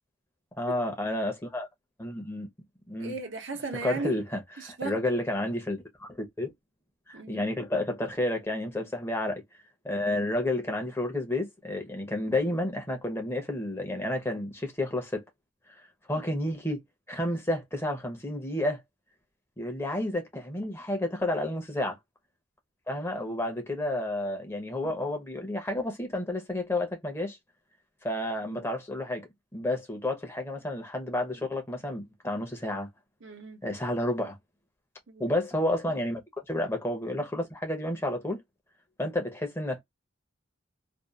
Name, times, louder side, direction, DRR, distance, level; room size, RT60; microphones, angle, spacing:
voice 1, 0.6-1.7 2.0-2.5 2.9-3.1 3.8-6.5 7.1-9.4 9.8-15.2 16.1-16.8 17.1-18.8 19.6-22.0 22.9-27.4 28.0-32.9 33.6-34.4 35.2-36.2 36.5-38.4 39.0-39.8, left 1 dB, 10° left, 0.7 m, -31 dB
voice 2, 3.0-4.2 4.6-5.0 7.1-7.5 28.4-28.7 33.2-33.6 35.1-35.4, right 3 dB, 80° right, 0.8 m, -37 dB
2.6 x 2.4 x 2.2 m
head